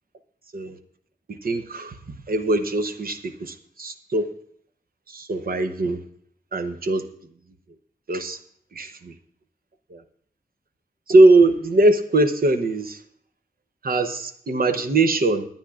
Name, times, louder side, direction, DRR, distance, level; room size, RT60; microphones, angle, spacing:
voice 1, 1.3-4.3 5.1-6.0 6.5-7.1 8.1-8.4 8.7-9.1 9.9-10.0 11.1-13.0 13.8-15.5, right 2 dB, 70° right, 8 dB, 0.9 m, -21 dB
21.5 x 9.0 x 2.5 m, 0.63 s
wide cardioid pair, 90°, 16 cm